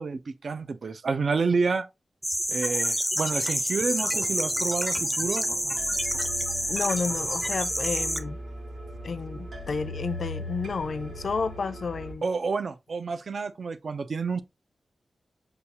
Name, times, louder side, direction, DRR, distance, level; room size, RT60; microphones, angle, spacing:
voice 1, 0.0-1.9 2.5-5.8 12.2-14.4, right 4 dB, 55° right, 0.5 m, -29 dB
sound 1, 2.2-8.2, equal, ahead, 0.5 m, -28 dB
sound 2, 3.6-12.1, equal, 75° right, 1.9 m, -40 dB
voice 2, 6.7-8.4 9.0-12.2, left 4 dB, 55° left, 0.4 m, -31 dB
6.8 x 2.3 x 2.9 m
wide cardioid pair, 165°, 0 cm